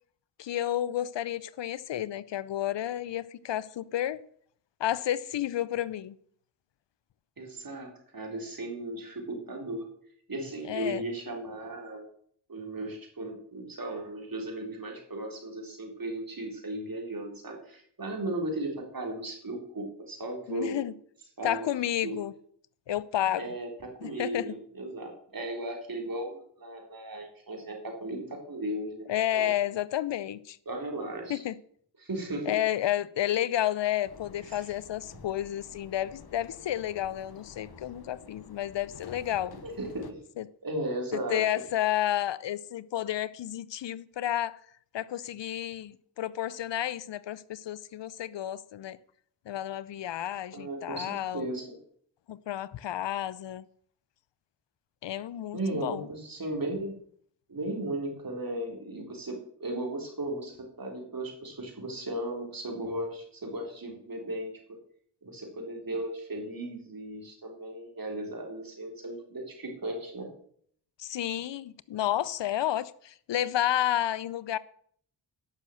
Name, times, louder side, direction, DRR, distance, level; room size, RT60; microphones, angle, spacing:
voice 1, 0.4-4.2 4.8-6.2 10.6-11.0 20.5-20.9 21.4-22.3 22.9-23.5 24.0-24.5 29.1-30.6 31.3-31.6 32.5-39.5 40.4-40.5 41.1-44.6 44.9-49.0 49.5-51.5 52.3-53.7 55.0-56.1 71.0-74.6, left 12 dB, 80° left, 0.6 m, -31 dB
voice 2, 7.4-9.9 10.3-12.0 12.5-20.8 21.4-21.7 22.0-22.2 23.3-29.5 30.7-31.4 32.0-32.5 34.5-34.7 39.6-40.2 40.6-41.4 50.5-51.8 55.5-56.9 57.5-64.5 65.2-70.3, right 1 dB, 50° right, 3.9 m, -36 dB
sound 1, 34.0-40.1, left 6 dB, 60° left, 1.2 m, -50 dB
11.5 x 6.3 x 7.7 m
cardioid pair, 40°, 43 cm